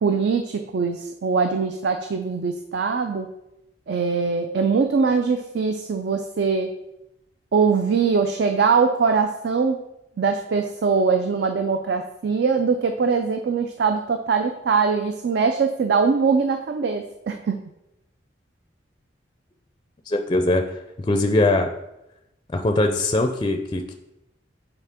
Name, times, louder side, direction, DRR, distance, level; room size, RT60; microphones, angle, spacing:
voice 1, 0.0-3.3 3.9-6.7 7.5-9.8 10.2-17.6, right 5 dB, 60° right, 6 dB, 0.4 m, -22 dB
voice 2, 20.1-20.6 21.1-21.7 22.5-23.9, left 2 dB, 25° left, 5 dB, 0.4 m, -21 dB
8.2 x 4.1 x 3.6 m, 0.89 s
head